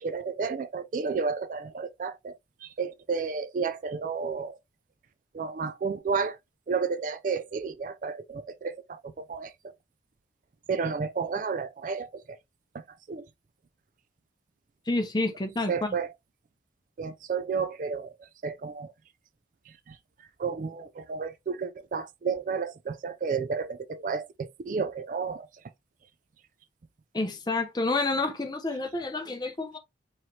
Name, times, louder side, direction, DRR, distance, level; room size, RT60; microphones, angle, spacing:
voice 1, 0.0-2.4 2.6-4.6 5.3-6.4 6.7-9.5 10.7-12.1 12.7-12.8 13.1-13.2 15.7-16.1 17.0-18.1 18.4-18.9 19.9-20.0 20.4-25.5, right 5 dB, 45° right, 0.3 m, -31 dB
voice 2, 14.9-16.0 27.1-29.8, left 2 dB, 20° left, 0.7 m, -29 dB
4.8 x 3.0 x 2.7 m
head